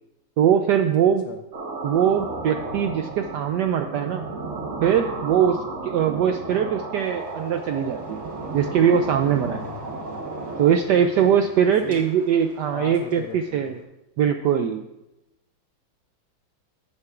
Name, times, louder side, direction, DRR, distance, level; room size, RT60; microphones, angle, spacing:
voice 1, 0.4-1.3 1.8-4.2 4.8-8.2 8.5-9.6 10.6-13.8 14.2-14.9, right 8 dB, 80° right, 7 dB, 0.9 m, -21 dB
sound 1, 1.5-10.8, right 3 dB, 45° right, 1.1 m, -34 dB
sound 2, 7.0-13.8, right 1 dB, 10° right, 2.4 m, -48 dB
voice 2, 9.5-10.2 10.9-11.4 11.8-12.0 12.7-13.8, left 8 dB, 75° left, 5 dB, 0.9 m, -38 dB
12.5 x 9.6 x 2.4 m, 0.92 s
omnidirectional pair, 2.3 m